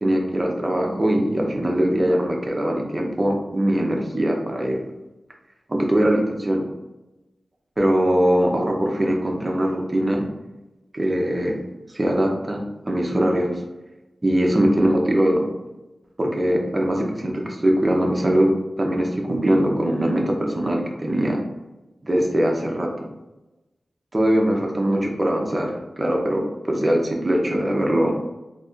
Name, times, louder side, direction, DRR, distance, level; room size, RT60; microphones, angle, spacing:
voice 1, 0.0-4.8 5.7-6.6 7.8-10.2 10.9-11.6 11.9-13.6 14.2-15.5 16.2-18.5 18.8-21.4 22.0-22.9 24.1-28.1, right 1 dB, 25° right, 0 dB, 0.6 m, -21 dB
3.9 x 2.9 x 2.5 m, 1.0 s
wide cardioid pair, 125°, 0 cm